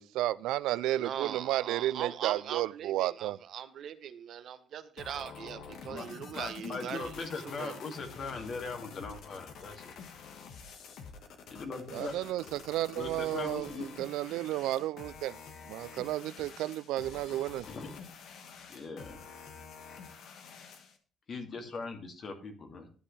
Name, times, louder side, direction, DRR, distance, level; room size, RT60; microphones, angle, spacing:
voice 1, 0.0-3.4 11.9-15.4 15.7-17.7, right 15 dB, 85° right, 0.3 m, -32 dB
voice 2, 0.9-7.1 7.6-7.8, right 9 dB, 65° right, 1.0 m, -40 dB
sound 1, 5.0-21.0, left 6 dB, 75° left, 1.5 m, -48 dB
voice 3, 6.3-10.0 11.5-12.1 12.4-12.5 13.0-13.9 17.7-18.0 18.7-19.2 21.3-22.9, left 4 dB, 55° left, 2.4 m, -40 dB
12.5 x 8.4 x 3.3 m
supercardioid pair, 75°, 0 cm